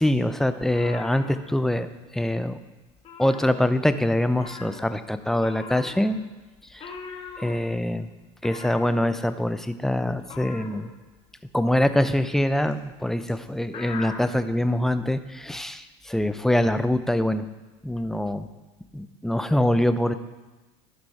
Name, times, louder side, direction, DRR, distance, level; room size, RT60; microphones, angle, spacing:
voice 1, 0.0-1.9 2.1-2.6 3.2-6.2 6.7-6.9 7.4-8.1 8.4-10.9 11.5-17.5 17.8-18.5 18.9-20.1, left 1 dB, 5° left, 10 dB, 0.6 m, -24 dB
sound 1, 0.6-2.1 2.3-2.6 2.9-4.0 4.3-14.4, left 4 dB, 40° left, 1.7 m, -41 dB
12.0 x 6.1 x 4.8 m, 1.2 s
supercardioid pair, 100°, 15 cm